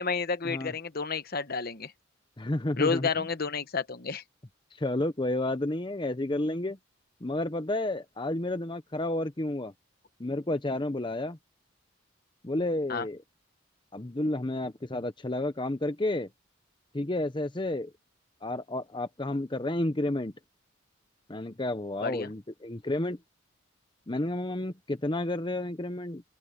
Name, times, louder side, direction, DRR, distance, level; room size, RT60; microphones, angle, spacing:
voice 1, 0.0-1.9 2.7-4.2 12.9-13.1 22.0-22.3, left 5 dB, 50° left, 1.1 m, -30 dB
voice 2, 2.4-3.1 4.8-6.8 7.2-9.7 10.2-11.4 12.4-13.2 13.9-16.3 16.9-17.9 18.4-20.3 21.3-23.2 24.1-26.2, left 1 dB, 25° left, 0.8 m, -31 dB
open air
head